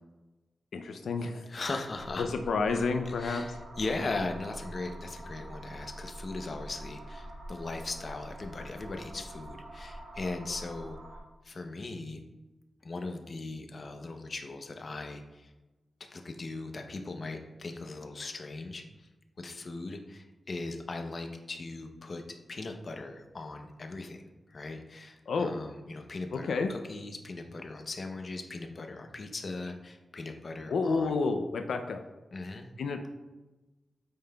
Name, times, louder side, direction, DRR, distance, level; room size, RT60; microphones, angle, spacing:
voice 1, 0.7-1.8 2.2-3.6 25.3-25.5 26.3-26.7 30.7-32.0 32.8-33.1, left 4 dB, 90° left, 6 dB, 0.4 m, -30 dB
voice 2, 1.5-2.3 3.1-11.0 11.4-12.2 12.8-15.5 16.1-19.1 19.4-24.2 24.5-31.2 32.3-32.7, left 3 dB, 45° left, 5 dB, 0.7 m, -39 dB
sound 1, 1.9-11.2, right 1 dB, 60° right, 2.1 m, -45 dB
8.6 x 5.5 x 2.3 m, 1.1 s
wide cardioid pair, 110°, 0 cm